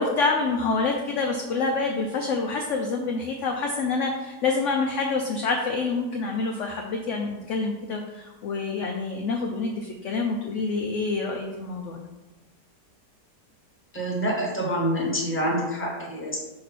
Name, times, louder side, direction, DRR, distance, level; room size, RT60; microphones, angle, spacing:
voice 1, 0.0-12.0, left 3 dB, 70° left, 2 dB, 0.7 m, -27 dB
voice 2, 13.9-16.4, equal, 10° left, -3 dB, 1.2 m, -26 dB
5.4 x 4.2 x 4.1 m, 1.2 s
omnidirectional pair, 1.8 m